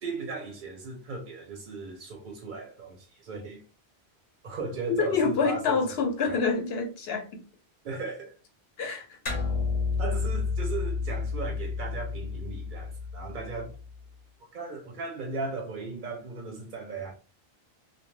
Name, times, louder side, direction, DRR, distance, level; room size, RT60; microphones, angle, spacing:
voice 1, 0.0-3.6 4.4-5.8 6.3-6.6 7.8-8.4 10.0-13.7 14.5-17.1, right 4 dB, 60° right, 0.6 m, -37 dB
voice 2, 5.0-7.4 8.8-9.2, left 5 dB, 70° left, 0.9 m, -27 dB
sound 1, 9.3-14.0, left 4 dB, 45° left, 0.8 m, -31 dB
2.2 x 2.1 x 3.0 m
omnidirectional pair, 1.1 m